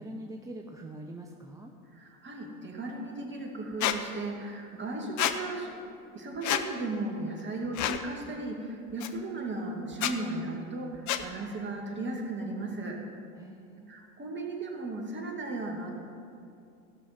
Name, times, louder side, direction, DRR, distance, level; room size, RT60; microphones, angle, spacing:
voice 1, 0.0-1.7 13.4-13.9, right 1 dB, 10° right, 3 dB, 0.5 m, -43 dB
voice 2, 1.9-5.7 6.1-13.0 13.9-16.0, right 2 dB, 25° right, 1 dB, 2.2 m, -36 dB
Squeak, 3.8-4.0 5.2-5.4 6.4-6.6 7.7-8.0 9.0-9.1 9.9-10.1 11.1-11.2, left 11 dB, 40° left, 0.8 m, -28 dB
15.5 x 6.2 x 5.9 m, 2.5 s
hypercardioid pair, 85°, 44 cm